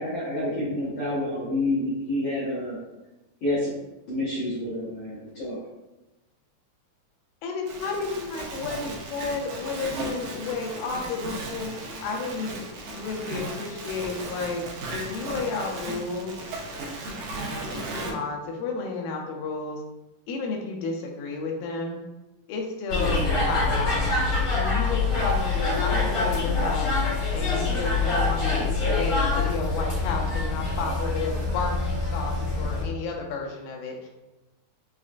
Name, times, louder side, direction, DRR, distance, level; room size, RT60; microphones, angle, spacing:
voice 1, 0.0-2.8 3.4-3.7 4.1-5.6, left 1 dB, 70° left, -11 dB, 1.4 m, -28 dB
voice 2, 7.4-11.7 12.0-12.6 12.9-14.6 14.9-16.4 17.7-19.8 20.3-22.0 22.5-24.2 24.5-27.0 27.3-34.1, left 4 dB, 85° left, 1 dB, 2.2 m, -32 dB
voice 3, 8.3-10.5 10.9-12.6 13.2-14.5 14.8-16.0 16.5-18.1, right 2 dB, 80° right, -1 dB, 2.2 m, -35 dB
sound 1, 22.9-32.8, left 3 dB, 50° left, 1.5 m, -25 dB
6.1 x 2.1 x 2.4 m, 1.0 s
omnidirectional pair, 4.0 m